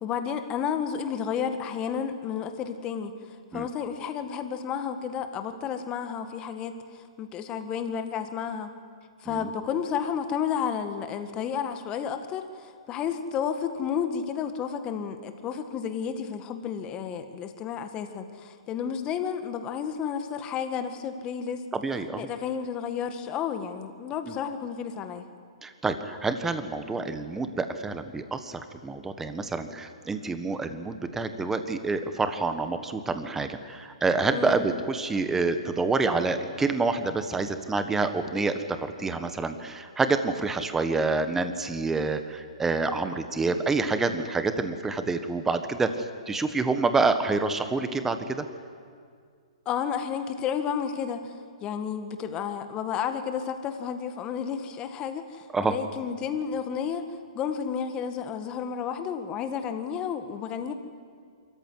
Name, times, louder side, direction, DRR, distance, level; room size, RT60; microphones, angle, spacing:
voice 1, 0.0-3.1 3.5-8.7 9.2-21.7 22.2-25.3 34.3-34.6 49.7-51.3 51.6-57.1 57.3-60.7, left 7 dB, 25° left, 8 dB, 1.8 m, -31 dB
voice 2, 21.7-22.3 24.2-24.4 25.6-48.4 55.5-55.7, right 3 dB, 10° right, 9 dB, 1.4 m, -27 dB
25.0 x 14.5 x 9.6 m, 2.1 s
hypercardioid pair, 130°, 3 cm